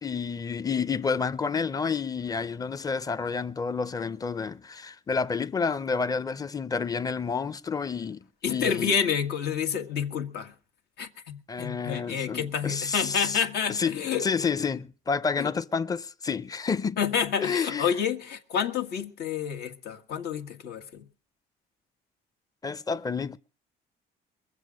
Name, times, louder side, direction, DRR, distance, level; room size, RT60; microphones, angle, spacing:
voice 1, 0.0-8.2 8.5-9.0 11.5-13.4 13.7-17.0 17.4-17.9 22.6-23.4, left 5 dB, 20° left, 0.7 m, -29 dB
voice 2, 8.4-10.5 11.0-14.3 15.4-15.5 17.0-21.1, left 7 dB, 75° left, 1.7 m, -29 dB
22.5 x 7.5 x 6.3 m
cardioid pair, 110°, 17 cm